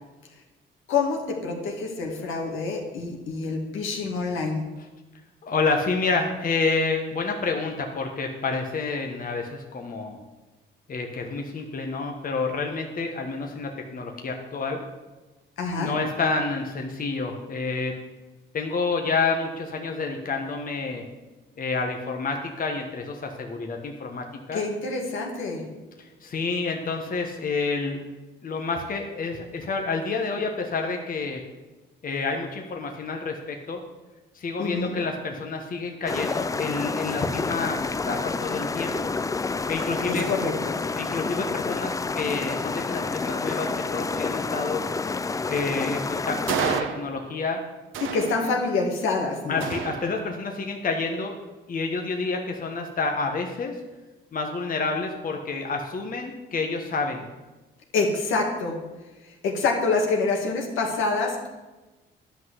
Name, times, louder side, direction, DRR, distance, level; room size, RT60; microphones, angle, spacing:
voice 1, 0.9-4.6 15.6-15.9 24.5-25.7 34.6-34.9 40.1-40.8 48.0-49.7 57.9-58.8 59.2-61.5, left 3 dB, 85° left, 1 dB, 2.2 m, -26 dB
voice 2, 5.4-10.2 10.9-14.8 15.7-17.9 18.5-21.0 21.6-24.6 26.0-28.0 28.4-31.4 32.0-33.8 34.3-39.2 39.7-40.3 41.0-44.8 45.5-47.6 49.5-51.4 51.7-53.8 54.3-57.2, left 4 dB, 45° left, 3 dB, 1.3 m, -29 dB
sound 1, 36.1-46.8, left 4 dB, 15° left, 0.4 m, -29 dB
sound 2, 46.5-47.5 47.9-48.9 49.6-50.6, right 8 dB, 80° right, 1.0 m, -31 dB
10.5 x 5.9 x 8.0 m, 1.1 s
cardioid pair, 90°, 20 cm